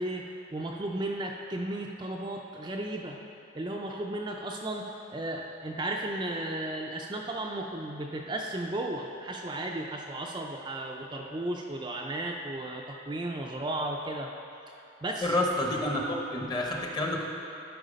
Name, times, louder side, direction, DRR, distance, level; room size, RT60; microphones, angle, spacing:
voice 1, 0.0-3.2 3.5-14.3 14.7-14.8 15.0-15.3, right 1 dB, 25° right, 0 dB, 0.4 m, -34 dB
voice 2, 15.2-17.3, left 1 dB, 20° left, 0 dB, 0.8 m, -29 dB
12.0 x 4.7 x 5.1 m, 2.9 s
head